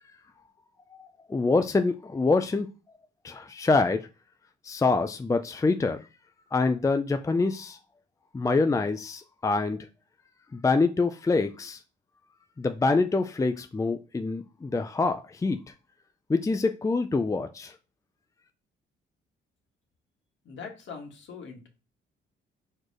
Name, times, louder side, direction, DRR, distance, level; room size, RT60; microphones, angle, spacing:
voice 1, 1.0-2.7 3.2-4.1 4.6-6.0 6.5-7.8 8.3-9.8 10.5-11.8 12.6-15.6 16.3-17.7, left 3 dB, 15° left, 8 dB, 0.5 m, -25 dB
voice 2, 20.4-21.7, left 5 dB, 65° left, 2 dB, 2.0 m, -42 dB
4.7 x 4.4 x 5.0 m, 0.31 s
cardioid pair, 90°, 20 cm